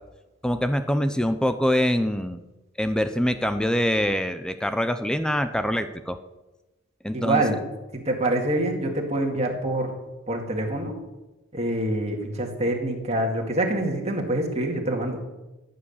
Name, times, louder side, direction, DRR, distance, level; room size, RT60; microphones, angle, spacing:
voice 1, 0.4-2.4 2.8-6.2 7.0-7.4, equal, 5° left, 9 dB, 0.5 m, -24 dB
voice 2, 7.1-7.6 7.9-9.9 10.3-11.0 11.5-15.2, right 1 dB, 30° right, 1 dB, 2.3 m, -26 dB
14.5 x 8.6 x 7.3 m, 1.1 s
head